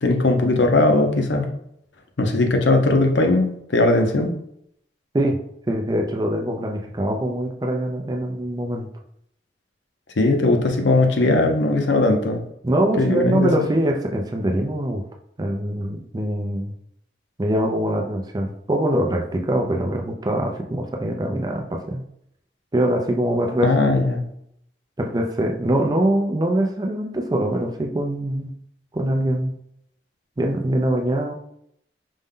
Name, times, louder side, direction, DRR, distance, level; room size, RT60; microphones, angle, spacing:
voice 1, 0.0-1.5 2.2-4.3 10.2-12.4 13.0-13.7 23.6-24.2, left 2 dB, 90° left, 4 dB, 0.7 m, -19 dB
voice 2, 5.7-8.9 12.6-15.0 15.4-16.7 17.4-22.0 22.7-24.1 25.0-28.5 28.9-29.5 30.4-31.4, right 1 dB, 20° right, 3 dB, 0.4 m, -23 dB
5.2 x 2.2 x 3.6 m, 0.73 s
head